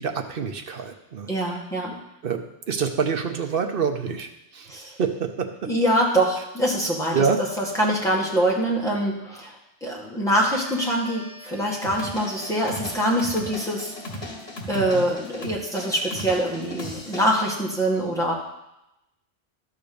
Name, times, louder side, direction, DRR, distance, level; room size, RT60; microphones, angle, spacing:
voice 1, 0.0-1.3 2.2-2.4 2.7-5.5 7.1-7.4 14.7-15.1, right 6 dB, 60° right, 6 dB, 1.0 m, -26 dB
voice 2, 1.3-2.0 4.7-4.9 5.7-7.2 7.8-9.5 9.8-13.9 14.7-18.3, right 1 dB, 5° left, -4 dB, 1.8 m, -24 dB
sound 1, 10.6-14.1, right 4 dB, 20° right, 1.5 m, -45 dB
sound 2, 11.8-17.3, left 1 dB, 75° left, 1.6 m, -37 dB
12.0 x 4.0 x 6.8 m, 0.88 s
omnidirectional pair, 1.1 m